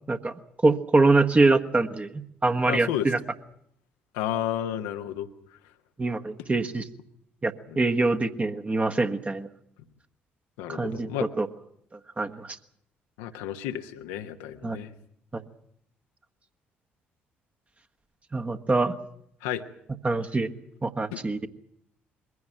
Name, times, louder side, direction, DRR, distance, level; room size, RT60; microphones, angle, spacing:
voice 1, 0.6-3.2 6.0-6.8 7.4-9.5 10.7-11.1 11.4-11.5 12.2-12.6 14.6-14.8 15.3-15.4 18.3-18.9 20.0-20.5 20.8-21.5, right 3 dB, 25° right, 6 dB, 1.4 m, -24 dB
voice 2, 2.6-3.1 4.1-5.3 7.7-7.8 10.6-11.3 13.2-14.9 19.4-19.6 21.1-21.2, left 11 dB, 70° left, 8 dB, 1.1 m, -31 dB
22.0 x 16.0 x 9.0 m, 0.72 s
figure-of-eight pair, 45°, 6 cm